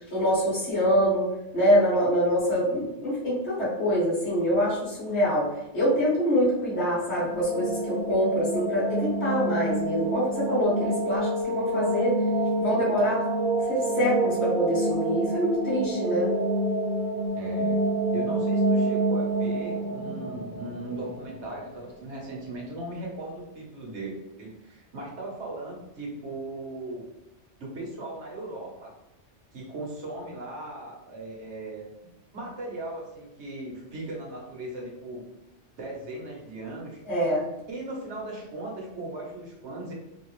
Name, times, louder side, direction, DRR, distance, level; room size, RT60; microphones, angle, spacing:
voice 1, 0.1-1.3 1.5-12.2 12.6-13.2 13.6-16.3 37.1-37.5, equal, 70° left, -8 dB, 1.6 m, -25 dB
sound 1, 7.0-21.8, right 1 dB, 60° right, 1.0 m, -28 dB
voice 2, 17.4-17.8 18.1-27.0 27.6-28.9 29.5-35.2 35.8-37.0 37.7-39.9, right 2 dB, 75° right, -2 dB, 1.3 m, -38 dB
3.5 x 2.5 x 3.1 m, 0.91 s
omnidirectional pair, 1.2 m